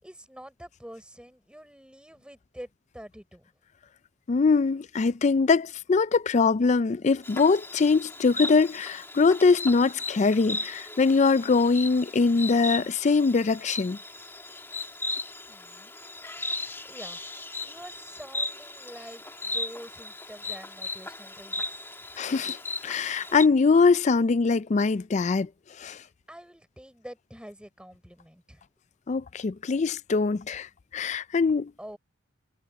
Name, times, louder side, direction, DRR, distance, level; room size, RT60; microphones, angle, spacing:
voice 1, 0.0-3.5 15.5-16.0 16.8-17.2 17.6-21.9 26.3-28.6 31.8-32.0, equal, 5° right, 6.3 m, -46 dB
voice 2, 4.3-14.0 22.2-22.6 22.8-25.5 25.8-26.0 29.1-30.7 30.9-31.7, left 4 dB, 35° left, 0.4 m, -22 dB
Insect, 7.2-23.5, left 2 dB, 10° left, 2.6 m, -37 dB
head